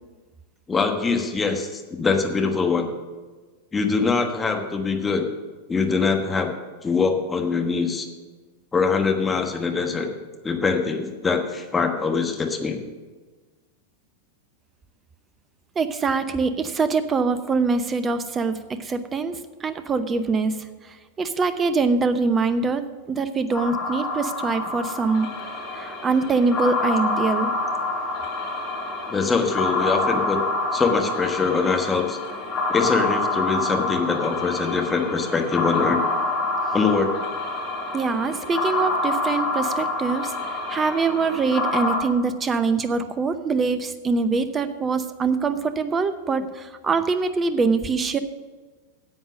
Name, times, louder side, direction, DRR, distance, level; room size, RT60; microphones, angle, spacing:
voice 1, 0.7-2.9 3.7-5.3 5.7-6.5 6.8-8.1 8.7-10.1 10.4-12.8 29.1-30.4 30.7-32.2 32.7-36.0 36.7-37.1, left 4 dB, 15° left, 3 dB, 1.3 m, -23 dB
voice 2, 15.8-20.6 20.9-25.3 25.7-27.5 37.9-40.3 40.7-48.2, right 4 dB, 20° right, 12 dB, 0.7 m, -24 dB
sound 1, 23.5-42.0, left 2 dB, 40° left, 3.1 m, -27 dB
10.0 x 8.0 x 6.3 m, 1.4 s
figure-of-eight pair, 90°, 0 cm